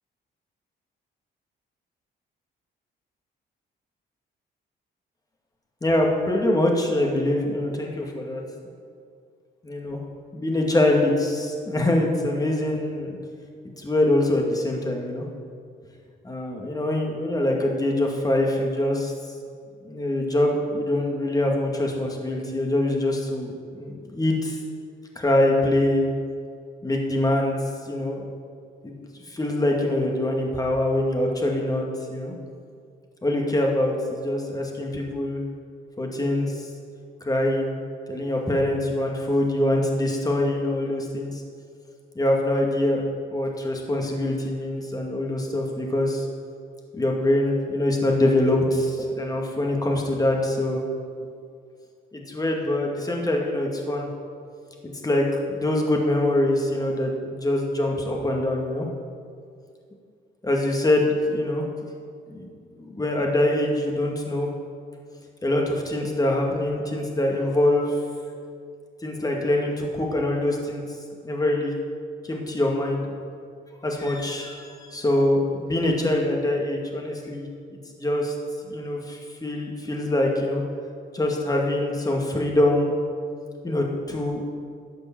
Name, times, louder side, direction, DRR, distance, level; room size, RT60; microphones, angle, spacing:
voice 1, 5.8-8.4 9.6-10.0 10.3-13.2 13.8-15.3 16.2-19.1 19.8-24.6 25.2-26.0 26.8-27.5 27.8-28.2 28.8-32.3 33.2-35.4 36.0-36.7 37.2-37.8 38.1-41.4 42.2-46.2 46.9-50.8 52.1-54.1 55.0-58.9 60.4-61.7 62.3-62.4 62.7-64.5 65.4-68.0 69.0-70.8 71.2-71.7 72.2-73.1 73.8-77.5 78.0-78.3 78.6-80.6 81.1-82.9 83.6-84.4, left 1 dB, 20° left, 0 dB, 2.1 m, -24 dB
12.0 x 5.3 x 8.7 m, 2.2 s
cardioid pair, 90°, 20 cm